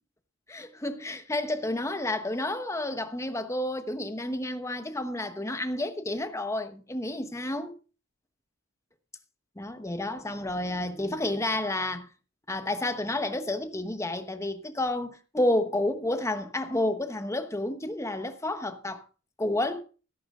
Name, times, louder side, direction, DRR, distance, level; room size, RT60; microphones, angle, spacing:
voice 1, 0.5-7.7 9.6-12.1 12.5-19.0 19.4-19.8, left 1 dB, 15° left, 1.1 m, -30 dB
14.0 x 11.0 x 3.7 m
head